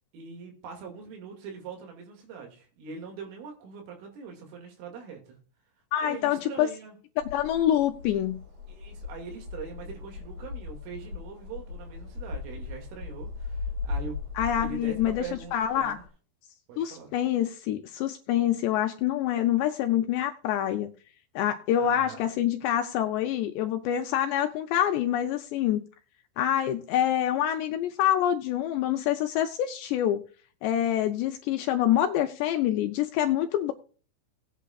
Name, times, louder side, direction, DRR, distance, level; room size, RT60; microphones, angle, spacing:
voice 1, 0.1-5.4 6.0-7.0 8.7-14.2 14.6-16.0 16.7-17.1 21.8-22.2, right 6 dB, 90° right, 2 dB, 4.6 m, -42 dB
voice 2, 5.9-6.7 7.3-8.4 14.4-15.2 15.5-16.0 16.8-20.9 21.4-25.8 26.4-30.2 30.6-33.7, left 11 dB, 80° left, 6 dB, 2.6 m, -26 dB
sound 1, 7.2-16.1, left 4 dB, 45° right, 2.6 m, -38 dB
19.0 x 8.4 x 2.3 m, 0.40 s
omnidirectional pair, 5.6 m